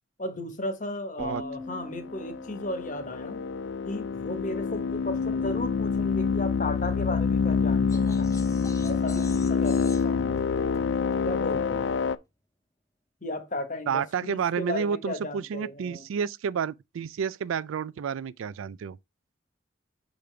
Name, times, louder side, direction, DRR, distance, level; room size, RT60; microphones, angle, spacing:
voice 1, 0.2-3.4 3.8-8.3 8.8-10.7 11.2-11.9 13.2-16.0, left 1 dB, 40° left, 1.3 m, -35 dB
sound 1, 1.2-5.1, left 2 dB, 15° right, 0.8 m, -44 dB
sound 2, 2.1-12.2, left 5 dB, 65° left, 0.4 m, -27 dB
sound 3, 7.9-12.1, left 2 dB, 15° left, 0.7 m, -46 dB
voice 2, 13.9-19.0, right 7 dB, 85° right, 0.4 m, -30 dB
6.7 x 5.2 x 3.3 m
head